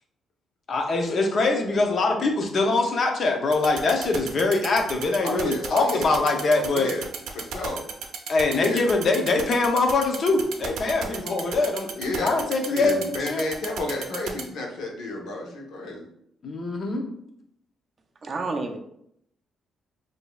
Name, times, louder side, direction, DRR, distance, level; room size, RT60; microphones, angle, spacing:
voice 1, 0.7-6.9 8.3-13.4 16.4-17.1, left 3 dB, 45° left, 3 dB, 0.6 m, -23 dB
sound 1, 3.5-14.4, right 8 dB, 85° right, 0.5 m, -33 dB
voice 2, 5.2-6.4 6.7-7.1 7.3-7.9 8.5-8.9 12.0-16.0, left 2 dB, 80° left, 0 dB, 0.9 m, -31 dB
voice 3, 18.2-18.8, right 3 dB, 35° right, 4 dB, 0.4 m, -29 dB
4.9 x 2.7 x 2.3 m, 0.72 s
cardioid pair, 140°, 0 cm